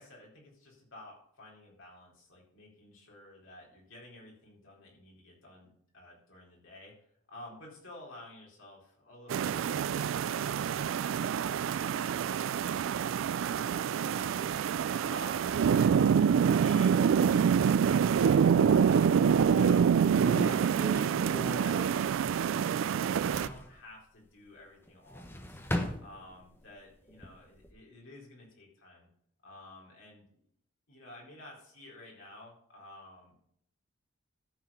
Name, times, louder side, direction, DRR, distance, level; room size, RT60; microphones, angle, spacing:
voice 1, 0.0-6.9 7.3-14.6 15.1-16.9 17.4-19.1 19.4-21.2 21.6-25.6 26.0-29.1 29.4-30.3 30.9-33.4, left 2 dB, 75° left, -3 dB, 4.2 m, -52 dB
sound 1, 9.3-23.5, right 7 dB, 70° right, 0.3 m, -26 dB
sound 2, 18.1-19.0 19.5-19.6 20.0-22.6 22.9-23.7 24.9-26.6 27.1-27.7, equal, 10° left, 0.9 m, -39 dB
13.0 x 4.8 x 5.6 m, 0.68 s
head